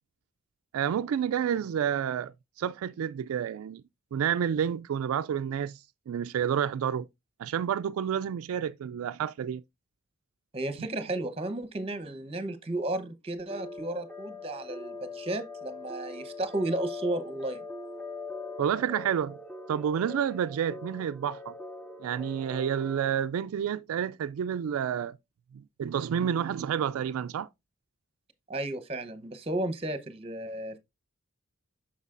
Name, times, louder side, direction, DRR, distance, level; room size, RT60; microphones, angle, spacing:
voice 1, 0.7-3.8 4.1-5.8 6.1-7.1 7.4-9.6 18.6-19.4 19.7-21.5 22.0-25.2 25.5-27.5, right 8 dB, 80° right, 0.3 m, -29 dB
voice 2, 10.5-17.6 28.5-30.8, right 1 dB, 25° right, 0.9 m, -33 dB
sound 1, 13.5-23.1, left 3 dB, 5° left, 0.6 m, -42 dB
8.1 x 6.1 x 2.5 m
head